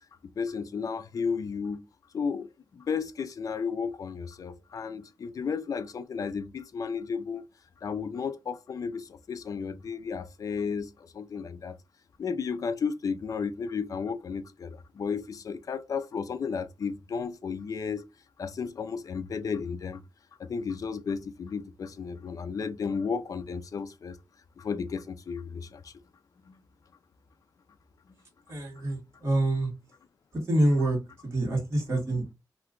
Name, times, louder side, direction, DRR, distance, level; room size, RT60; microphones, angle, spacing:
voice 1, 0.4-1.8 2.1-7.5 7.8-11.8 12.2-18.0 18.4-20.0 20.4-24.2 24.6-25.9 26.4-26.6, left 5 dB, 50° left, 0.4 m, -33 dB
voice 2, 28.5-29.7 30.5-31.0 31.2-32.3, right 1 dB, 40° right, 1.5 m, -26 dB
2.8 x 2.3 x 3.6 m
wide cardioid pair, 165°, 7 cm